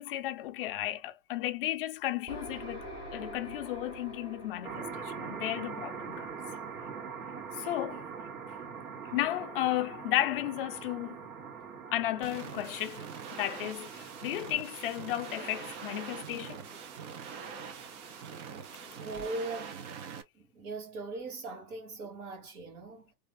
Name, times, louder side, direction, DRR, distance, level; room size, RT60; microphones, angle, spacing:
voice 1, 0.0-6.4 7.5-8.1 9.0-11.2 11.9-13.0 13.3-16.7 18.9-19.0, left 14 dB, 40° left, 0.4 m, -34 dB
sound 1, 2.3-7.9, equal, 10° right, 0.7 m, -46 dB
sound 2, 4.6-19.3, right 6 dB, 70° right, 1.8 m, -44 dB
sound 3, 12.2-20.2, right 6 dB, 50° right, 0.8 m, -44 dB
voice 2, 18.9-19.9 20.3-23.1, right 2 dB, 90° right, 2.3 m, -40 dB
3.3 x 2.5 x 3.2 m
supercardioid pair, 175°, 44 cm